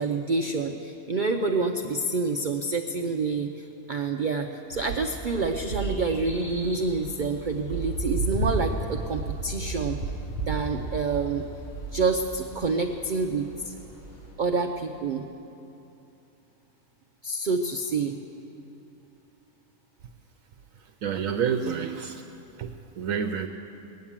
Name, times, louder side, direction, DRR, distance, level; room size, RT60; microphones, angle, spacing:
voice 1, 0.0-10.0 10.5-11.4 11.9-13.7 14.4-15.3 17.2-18.2, right 3 dB, 50° right, 3 dB, 0.6 m, -27 dB
sound 1, 4.7-14.3, right 3 dB, 80° left, 5.1 m, -34 dB
voice 2, 21.0-22.2 22.6-22.7 23.0-23.5, right 7 dB, 80° right, 5 dB, 1.1 m, -28 dB
19.0 x 9.5 x 7.3 m, 2.9 s
omnidirectional pair, 1.4 m